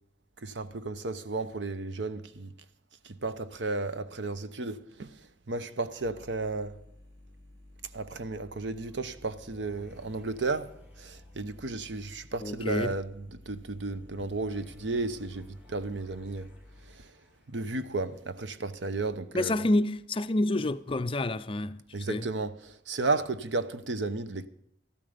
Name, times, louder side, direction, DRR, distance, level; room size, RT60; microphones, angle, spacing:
voice 1, 0.4-2.5 3.0-5.2 5.5-6.8 7.9-10.7 11.0-16.5 16.9-17.1 17.5-19.6 21.9-24.5, right 3 dB, 90° right, 0.9 m, -33 dB
sound 1, 6.0-16.9, left 1 dB, 50° right, 6.8 m, -54 dB
sound 2, 8.6-19.0, left 1 dB, 10° right, 2.1 m, -59 dB
voice 2, 12.4-13.0 19.3-22.3, left 1 dB, 30° left, 0.5 m, -28 dB
14.0 x 12.5 x 5.1 m
head